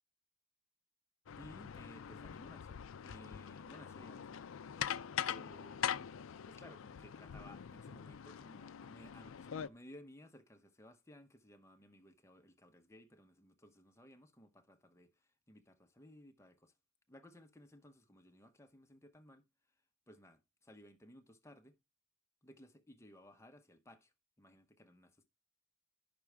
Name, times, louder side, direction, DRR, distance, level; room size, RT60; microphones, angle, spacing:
sound 1, 1.3-9.7, left 9 dB, 70° left, 0.4 m, -43 dB
voice 1, 1.4-4.4 5.3-6.1 6.4-15.1 15.5-16.7 17.1-19.4 20.1-21.8 22.4-25.3, left 1 dB, 15° left, 0.9 m, -58 dB
10.5 x 6.1 x 3.4 m
head